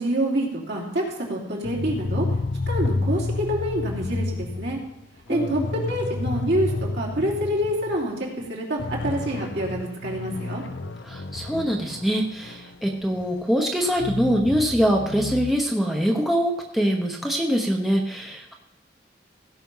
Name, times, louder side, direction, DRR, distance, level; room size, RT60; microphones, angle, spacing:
voice 1, 0.0-2.3 2.7-4.8 5.3-10.6, right 1 dB, 65° right, -3 dB, 3.3 m, -27 dB
sound 1, 1.6-8.1 8.4-8.5 8.8-13.4 13.9-15.5, left 2 dB, 70° left, 0.8 m, -30 dB
voice 2, 5.3-5.7 11.1-18.5, equal, ahead, 0 dB, 0.9 m, -24 dB
16.5 x 5.9 x 5.6 m, 0.87 s
head